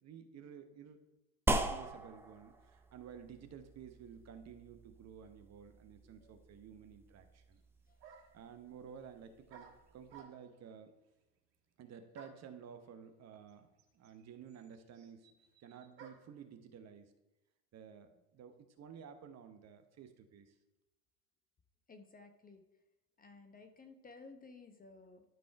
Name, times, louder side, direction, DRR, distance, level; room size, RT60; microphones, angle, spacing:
voice 1, 0.0-1.0 1.7-7.6 8.3-10.9 11.8-13.7 13.9-15.3 15.6-17.1 17.7-20.5, right 7 dB, 30° right, 8 dB, 0.9 m, -53 dB
sound 1, 1.5-10.2, right 1 dB, 5° right, 0.5 m, -42 dB
sound 2, 7.5-7.6 8.0-8.5 9.5-10.7 12.1-12.6 13.5-13.6 13.8-16.4, right 6 dB, 75° right, 1.5 m, -57 dB
voice 2, 21.9-22.6 23.2-25.2, left 3 dB, 15° left, 6 dB, 0.9 m, -56 dB
12.0 x 4.2 x 4.7 m, 1.0 s
hypercardioid pair, 80°, 50 cm